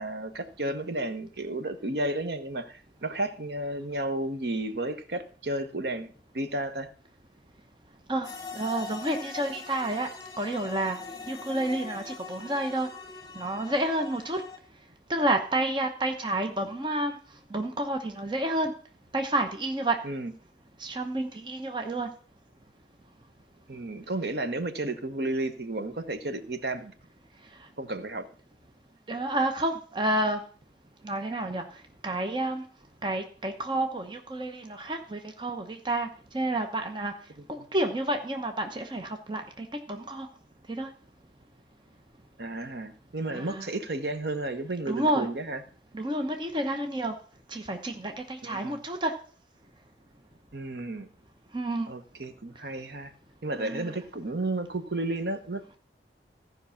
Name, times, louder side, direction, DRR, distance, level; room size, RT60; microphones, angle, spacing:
voice 1, 0.0-6.9 20.0-20.3 23.7-26.9 27.8-28.3 42.4-45.6 48.4-48.8 50.5-51.1 51.9-53.1 53.4-55.8, right 2 dB, 65° right, 9 dB, 1.0 m, -32 dB
sound 1, 8.2-14.6, left 4 dB, 20° left, 1.5 m, -42 dB
voice 2, 8.5-10.1 10.4-11.0 11.3-12.9 13.3-14.4 15.1-17.2 17.5-18.7 19.1-20.0 20.8-22.1 29.1-30.4 31.0-31.6 32.0-32.6 33.0-36.1 36.3-37.1 37.5-40.3 40.8-40.9 43.3-43.7 44.9-45.3 45.9-47.1 47.5-49.1 51.5-51.9 53.6-53.9, right 1 dB, 25° right, 5 dB, 0.9 m, -29 dB
14.5 x 5.4 x 5.7 m, 0.44 s
head